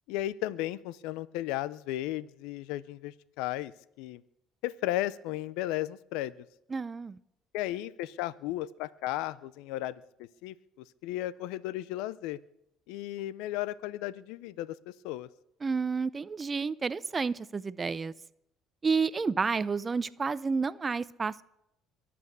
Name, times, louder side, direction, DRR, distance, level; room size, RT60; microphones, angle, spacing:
voice 1, 0.1-3.7 4.0-4.2 4.6-6.3 7.5-10.0 10.4-10.5 11.0-12.4 12.9-15.3, left 15 dB, 80° left, 19 dB, 0.5 m, -34 dB
voice 2, 6.7-7.2 15.6-18.1 18.8-21.4, right 5 dB, 30° right, 16 dB, 0.6 m, -30 dB
23.0 x 8.6 x 6.7 m, 0.80 s
supercardioid pair, 80°, 0 cm